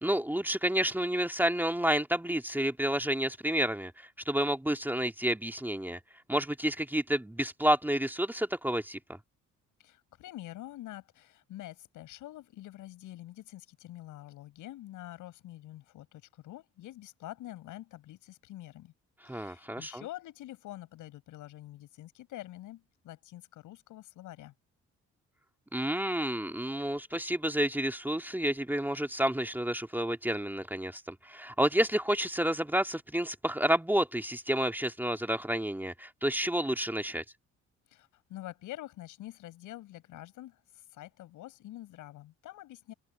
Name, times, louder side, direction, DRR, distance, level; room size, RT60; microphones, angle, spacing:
voice 1, 0.0-6.0 6.3-9.2 19.3-20.0 25.7-37.2, right 1 dB, 5° right, 2.1 m, -30 dB
voice 2, 9.8-18.9 19.2-24.5 37.9-42.9, left 15 dB, 90° left, 7.9 m, -46 dB
cardioid pair, 90°, 30 cm